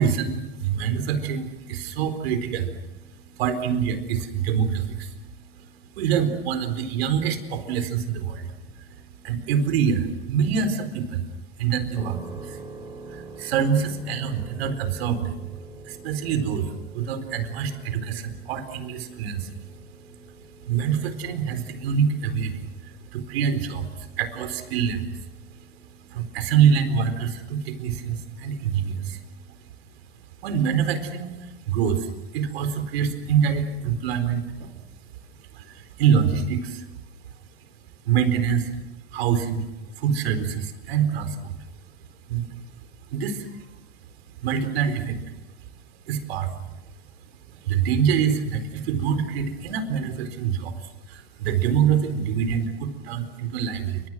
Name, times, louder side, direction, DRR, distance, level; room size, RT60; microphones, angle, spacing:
voice 1, 0.0-2.7 3.3-5.1 6.0-8.5 8.8-11.3 11.6-12.6 13.1-15.4 15.9-19.5 19.9-20.3 20.6-25.2 26.1-29.3 30.4-34.7 35.5-36.9 38.1-38.7 39.1-39.7 40.0-41.5 42.3-42.5 43.1-43.6 44.4-45.2 46.1-46.5 47.5-50.7 51.1-54.0, right 7 dB, 65° right, 9 dB, 4.4 m, -25 dB
sound 1, 11.9-26.6, right 2 dB, 10° right, 5.2 m, -46 dB
29.0 x 26.0 x 6.3 m, 0.98 s
hypercardioid pair, 105°, 33 cm